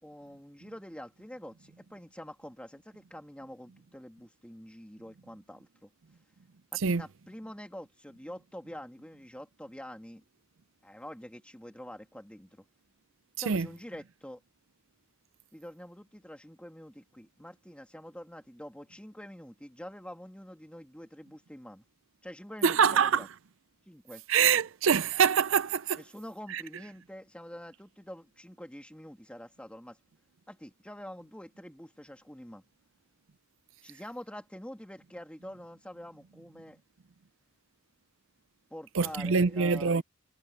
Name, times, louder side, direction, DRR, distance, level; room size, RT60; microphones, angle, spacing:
voice 1, 0.0-5.9 6.7-10.2 10.8-12.6 13.4-14.4 15.5-21.8 22.2-23.3 23.9-24.2 26.0-30.0 30.5-32.7 33.8-36.8 38.7-40.0, equal, 5° left, 2.6 m, -46 dB
voice 2, 22.6-23.3 24.3-26.0 26.5-26.6 38.9-40.0, right 6 dB, 65° right, 0.5 m, -25 dB
head